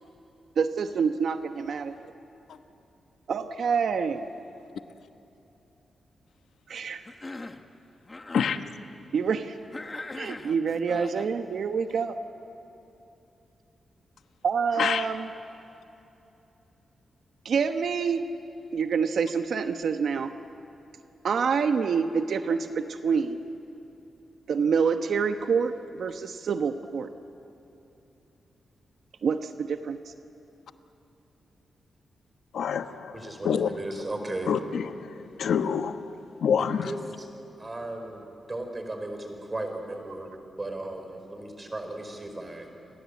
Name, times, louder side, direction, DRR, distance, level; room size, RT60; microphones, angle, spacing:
voice 1, 0.6-1.9 3.3-4.3 6.7-7.0 9.1-9.5 10.1-12.1 14.4-15.3 17.4-18.2 18.7-20.3 21.2-23.5 24.5-27.1 29.2-30.0, right 6 dB, 70° right, 7 dB, 1.1 m, -27 dB
Cough, 7.1-7.7 8.0-8.6 9.7-11.3, left 2 dB, 25° left, 1.3 m, -40 dB
voice 2, 32.5-33.7 34.5-36.9, left 7 dB, 85° left, 9 dB, 1.1 m, -27 dB
voice 3, 33.1-34.5 36.8-37.3 37.6-40.3 40.6-42.7, right 2 dB, 25° right, 5 dB, 4.7 m, -36 dB
29.5 x 22.5 x 8.4 m, 2.9 s
wide cardioid pair, 110°, 0 cm